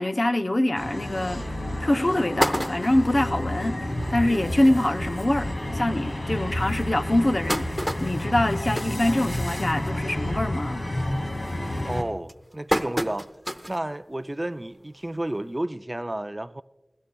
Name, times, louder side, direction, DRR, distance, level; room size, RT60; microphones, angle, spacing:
voice 1, 0.0-1.4 1.8-5.5 5.7-10.9, left 1 dB, 50° left, 0.7 m, -24 dB
sound 1, 0.8-12.0, left 1 dB, 65° left, 2.2 m, -30 dB
sound 2, 1.3-1.4 1.8-1.9 2.2-3.2 3.8-3.9 4.2-4.3 4.6-4.8 5.5-5.6 6.1-6.2 6.9-9.8 10.1-10.5 10.8-11.2 11.8-13.9 14.3-14.4 15.6-15.7, equal, 5° left, 0.8 m, -29 dB
voice 2, 11.8-13.3 13.7-16.6, right 1 dB, 30° right, 0.4 m, -31 dB
26.5 x 16.5 x 2.3 m
wide cardioid pair, 45°, 0 cm